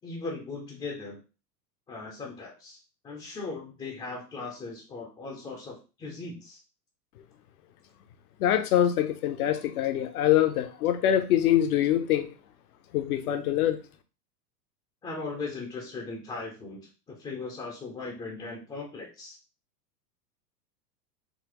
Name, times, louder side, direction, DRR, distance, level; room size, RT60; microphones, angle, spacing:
voice 1, 0.0-1.2 1.9-2.8 3.0-6.6 15.0-16.8 17.1-19.4, left 3 dB, 10° left, 0.4 m, -38 dB
voice 2, 8.4-12.3 12.9-13.8, left 11 dB, 60° left, 0.7 m, -24 dB
4.0 x 2.1 x 2.9 m
hypercardioid pair, 105°, 49 cm